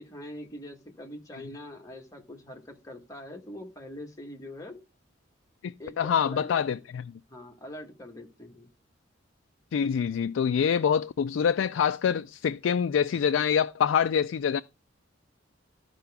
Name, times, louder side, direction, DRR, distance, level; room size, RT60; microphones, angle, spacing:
voice 1, 0.0-4.8 5.8-6.6 7.3-8.7, left 1 dB, 20° left, 1.5 m, -43 dB
voice 2, 5.6-7.1 9.7-14.6, left 7 dB, 75° left, 0.3 m, -25 dB
13.0 x 4.8 x 3.5 m
head